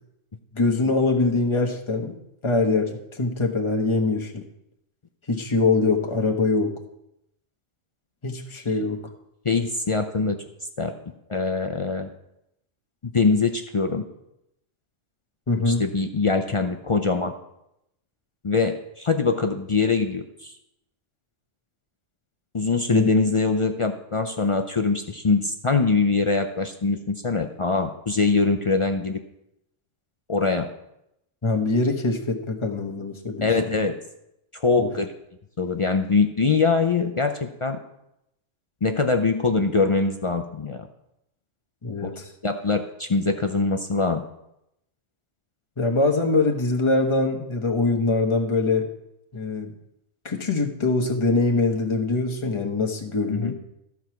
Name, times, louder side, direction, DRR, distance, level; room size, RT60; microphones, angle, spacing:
voice 1, 0.5-2.1 2.4-4.4 5.3-6.7 8.2-9.0 15.5-15.8 22.9-23.1 31.4-33.5 34.8-34.9 41.8-42.2 45.8-48.9 49.3-49.7 50.2-53.5, left 3 dB, 25° left, 2 dB, 1.1 m, -23 dB
voice 2, 9.4-10.4 10.8-10.9 11.3-12.1 13.0-14.0 15.7-17.3 18.4-20.5 22.5-29.2 30.3-30.7 33.4-34.0 34.5-35.1 35.6-37.8 38.8-40.9 42.0-42.1 42.4-44.2 53.3-53.5, left 4 dB, 45° left, 5 dB, 0.4 m, -23 dB
14.0 x 4.8 x 5.8 m, 0.83 s
omnidirectional pair, 1.3 m